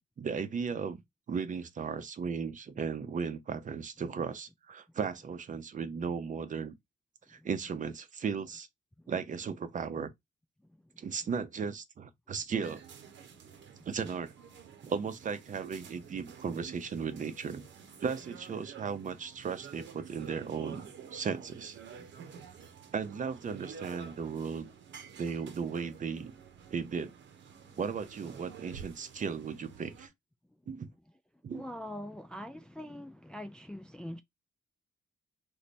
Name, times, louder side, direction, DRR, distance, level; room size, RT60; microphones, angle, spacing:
voice 1, 0.2-1.0 1.3-6.7 7.3-8.7 9.1-10.1 11.0-12.8 13.9-14.3 14.8-17.7 18.0-21.8 22.9-24.7 25.2-26.3 26.7-27.1 27.8-30.1 30.7-30.9 31.4-31.6, right 6 dB, 40° right, 0.6 m, -36 dB
voice 2, 10.6-11.1 13.5-13.9 27.6-27.8 31.5-34.2, left 1 dB, 5° left, 0.3 m, -44 dB
sound 1, 12.6-30.1, right 7 dB, 65° right, 0.9 m, -50 dB
3.2 x 2.1 x 4.1 m
cardioid pair, 90°, 20 cm